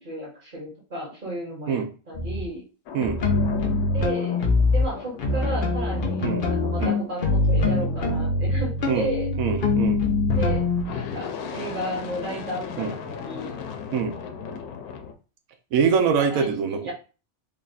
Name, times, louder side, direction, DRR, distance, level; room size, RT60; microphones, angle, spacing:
voice 1, 0.0-2.6 3.9-4.4 4.7-9.3 10.3-13.5 16.3-16.9, right 1 dB, 35° right, -4 dB, 1.7 m, -34 dB
sound 1, 2.1-2.4 3.0-4.9 5.2-10.8, left 3 dB, 45° left, 0.7 m, -23 dB
sound 2, 2.9-9.2 10.2-15.1, left 6 dB, 80° left, 1.1 m, -36 dB
voice 2, 9.4-10.0 12.8-12.9 13.9-14.1 15.7-16.8, right 6 dB, 70° right, 5 dB, 1.1 m, -23 dB
3.6 x 2.3 x 4.0 m, 0.34 s
omnidirectional pair, 1.6 m